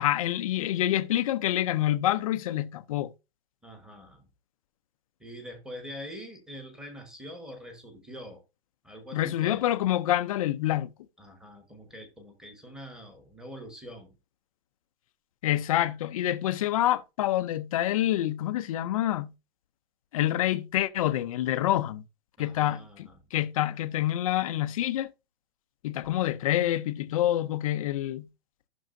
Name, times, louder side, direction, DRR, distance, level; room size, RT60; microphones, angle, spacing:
voice 1, 0.0-3.1 9.1-10.9 15.4-19.3 20.1-22.0 22.4-25.1 25.8-28.3, left 13 dB, 35° left, 0.5 m, -27 dB
voice 2, 3.6-4.3 5.2-8.4 8.8-9.6 11.2-14.2 22.4-23.2, equal, ahead, 1.3 m, -44 dB
15.0 x 6.1 x 2.6 m
hypercardioid pair, 160°, 33 cm